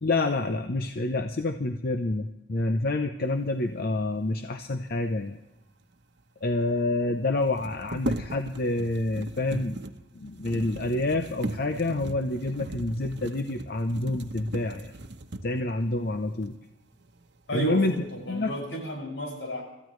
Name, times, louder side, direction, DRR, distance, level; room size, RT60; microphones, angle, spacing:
voice 1, 0.0-5.4 6.4-9.8 10.1-14.9 15.4-16.5 17.5-17.9 18.3-18.5, left 2 dB, 55° left, 7 dB, 0.7 m, -28 dB
sound 1, 5.9-6.0 6.2-6.3 7.4-15.7 16.4-16.5 17.0-17.6 18.0-18.5, right 1 dB, 65° right, 1.0 m, -38 dB
voice 2, 17.5-19.6, right 1 dB, 80° left, 0 dB, 6.3 m, -32 dB
26.0 x 14.0 x 3.2 m, 0.99 s
head